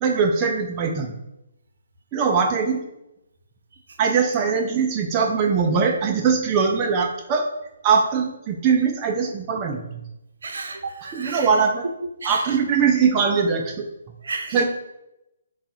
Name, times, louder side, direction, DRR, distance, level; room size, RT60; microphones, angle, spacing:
voice 1, 0.0-1.1 2.1-2.8 4.0-7.5 7.8-10.0 11.1-11.9 12.2-13.9 14.5-14.6, right 5 dB, 25° right, 2 dB, 0.4 m, -21 dB
voice 2, 10.4-11.5 12.2-12.6 14.2-14.6, right 3 dB, 70° right, 4 dB, 0.7 m, -33 dB
5.3 x 2.3 x 2.7 m, 0.89 s
hypercardioid pair, 140°, 0 cm